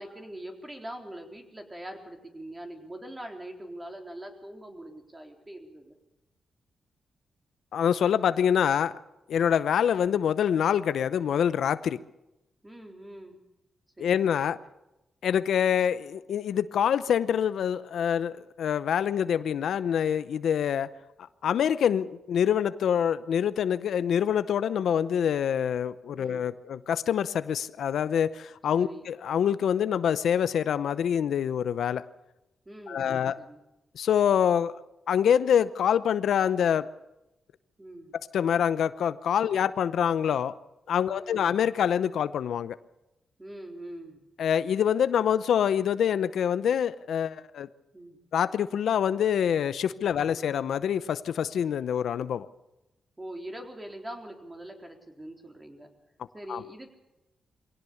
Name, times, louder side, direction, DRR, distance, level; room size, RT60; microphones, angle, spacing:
voice 1, 0.0-6.0 12.6-13.4 14.0-14.2 26.1-26.5 28.8-29.1 32.7-33.6 37.8-38.1 41.2-41.5 43.4-44.2 47.9-48.2 53.2-55.9 56.3-56.9, right 1 dB, 15° right, 3 dB, 3.9 m, -43 dB
voice 2, 7.7-8.9 9.3-12.0 14.0-14.6 15.2-20.9 21.4-32.0 32.9-33.4 34.0-34.8 35.1-36.9 38.3-40.5 40.9-42.8 44.4-47.7 48.3-52.5 56.5-56.6, left 8 dB, 75° left, 14 dB, 0.7 m, -25 dB
23.0 x 17.5 x 7.1 m, 0.94 s
cardioid pair, 105°, 0 cm